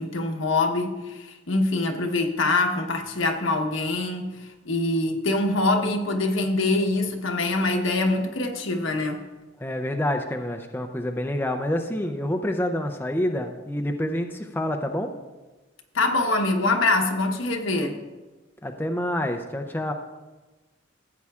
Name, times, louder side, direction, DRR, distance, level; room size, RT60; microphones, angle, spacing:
voice 1, 0.0-9.2 15.9-18.0, left 2 dB, 75° left, 3 dB, 1.1 m, -24 dB
voice 2, 9.6-15.1 18.6-19.9, left 1 dB, 10° left, 4 dB, 0.5 m, -27 dB
15.0 x 8.4 x 2.4 m, 1.2 s
head